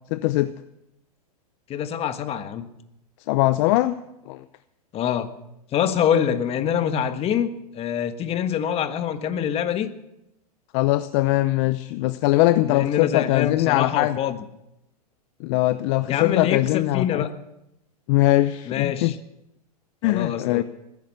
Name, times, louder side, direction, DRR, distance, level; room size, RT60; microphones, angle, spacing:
voice 1, 0.1-0.5 3.3-3.9 4.3-4.4 10.7-14.2 15.4-17.2 18.1-19.1 20.0-20.6, left 17 dB, 50° left, 14 dB, 0.7 m, -21 dB
voice 2, 1.7-2.7 4.9-5.3 5.7-9.9 12.7-14.4 16.1-17.3 18.7-19.2 20.0-20.6, left 9 dB, 30° left, 10 dB, 1.4 m, -25 dB
20.5 x 10.5 x 6.8 m, 0.85 s
hypercardioid pair, 115°, 20 cm